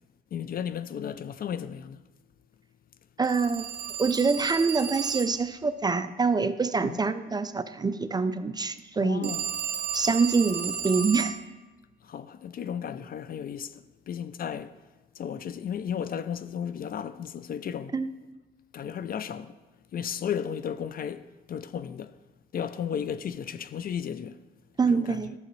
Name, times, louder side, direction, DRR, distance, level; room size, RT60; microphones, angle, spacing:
voice 1, 0.3-2.0 6.8-7.0 9.0-9.5 12.0-14.8 15.2-18.0 18.7-19.6 19.9-22.1 22.5-24.4 24.9-25.2, left 8 dB, 50° left, 0.4 m, -34 dB
voice 2, 3.2-3.7 4.0-9.3 9.9-11.4 17.9-18.1 24.8-25.3, right 4 dB, 20° right, 0.4 m, -25 dB
Telephone, 3.2-5.5 9.2-11.4, right 8 dB, 55° right, 0.8 m, -33 dB
11.5 x 6.9 x 3.2 m
cardioid pair, 90°, 20 cm